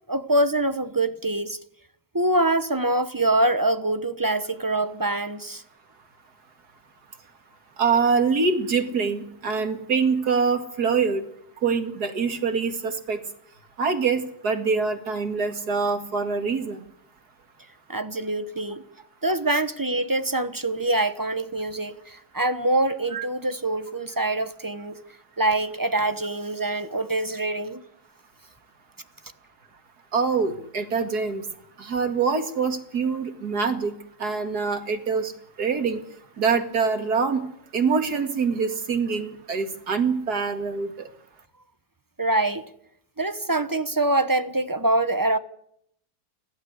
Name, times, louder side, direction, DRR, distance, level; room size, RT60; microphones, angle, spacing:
voice 1, 0.1-1.6 2.1-5.6 17.9-18.8 19.2-25.0 25.4-27.8 42.2-42.7 43.2-45.4, right 2 dB, 15° right, 0.9 m, -24 dB
voice 2, 7.8-11.2 11.6-13.2 13.8-16.8 23.1-23.3 30.1-31.4 31.8-33.9 34.2-35.3 35.6-36.0 36.4-37.4 37.7-41.1, right 5 dB, 70° right, 2.7 m, -24 dB
30.0 x 12.0 x 8.1 m
omnidirectional pair, 1.8 m